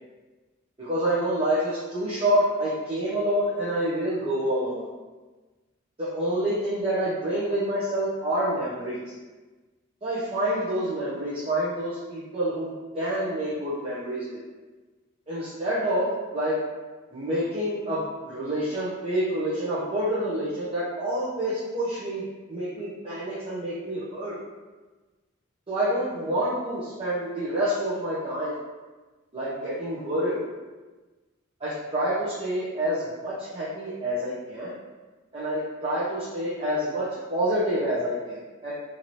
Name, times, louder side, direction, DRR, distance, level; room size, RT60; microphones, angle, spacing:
voice 1, 0.8-4.9 6.0-9.1 10.0-12.7 12.9-14.2 15.3-16.1 16.3-16.6 17.1-22.2 22.5-24.3 25.7-28.6 29.3-30.4 31.6-34.7 35.3-38.9, right 1 dB, 30° right, -10 dB, 0.6 m, -27 dB
2.8 x 2.6 x 3.0 m, 1.2 s
head